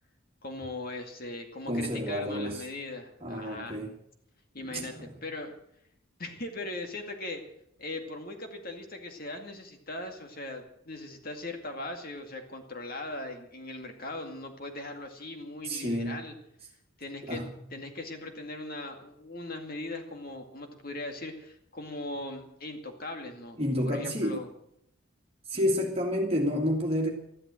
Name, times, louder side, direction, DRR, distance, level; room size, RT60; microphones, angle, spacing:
voice 1, 0.4-3.8 4.5-4.9 5.2-5.5 6.2-7.4 7.8-16.3 17.0-17.4 17.7-23.6 23.8-24.5, left 2 dB, 45° left, 4 dB, 2.2 m, -39 dB
voice 2, 1.7-2.6 3.2-3.9 4.7-5.1 15.6-16.2 17.2-17.7 23.6-24.4 25.5-27.1, equal, 30° right, -1 dB, 2.1 m, -30 dB
13.5 x 12.0 x 7.7 m, 0.73 s
head